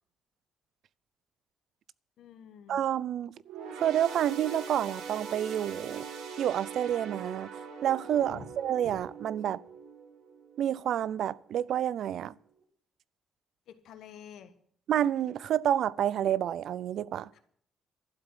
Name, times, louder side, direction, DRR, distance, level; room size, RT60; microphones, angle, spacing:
voice 1, 2.2-2.8 8.1-8.5 8.8-9.0 13.7-14.5 17.3-17.4, left 8 dB, 65° left, 1.6 m, -49 dB
voice 2, 2.7-3.3 3.8-6.1 6.4-9.6 10.6-12.3 14.9-17.4, right 10 dB, 60° right, 0.5 m, -29 dB
sound 1, 3.4-11.1 11.5-11.7 12.6-12.7, right 6 dB, 85° right, 2.3 m, -42 dB
12.5 x 7.7 x 9.9 m
cardioid pair, 150°, 0 cm